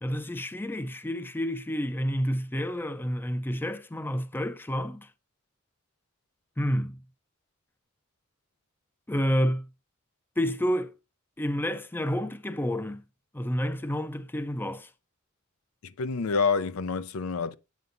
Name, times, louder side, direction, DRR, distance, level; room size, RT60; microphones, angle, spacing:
voice 1, 0.0-5.1 6.6-7.0 9.1-9.7 10.4-10.9 11.4-13.0 13.3-14.9, equal, 10° left, 0.5 m, -29 dB
voice 2, 15.8-17.5, left 4 dB, 70° left, 0.5 m, -28 dB
9.2 x 6.8 x 2.6 m
head